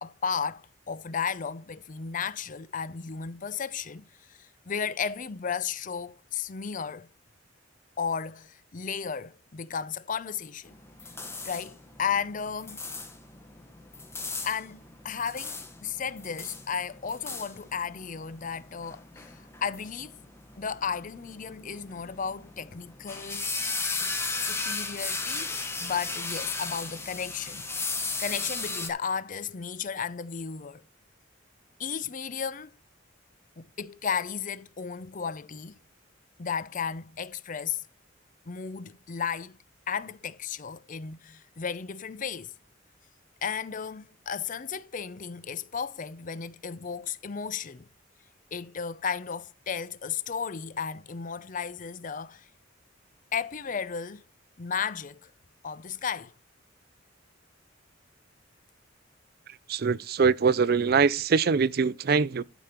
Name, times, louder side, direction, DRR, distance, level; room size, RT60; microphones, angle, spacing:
voice 1, 0.0-7.1 8.0-10.7 11.4-12.8 14.4-20.2 20.6-23.5 23.8-24.1 24.4-25.5 25.8-27.7 28.0-30.8 31.8-32.7 33.6-35.8 36.4-37.8 38.5-39.6 39.9-42.5 43.4-47.9 48.5-52.5 53.3-54.2 54.6-55.3 55.6-56.3, left 6 dB, 40° left, 0.6 m, -34 dB
sound 1, 10.7-28.9, left 3 dB, 15° left, 1.3 m, -36 dB
voice 2, 59.5-62.4, right 5 dB, 50° right, 0.5 m, -23 dB
12.0 x 5.2 x 4.4 m
head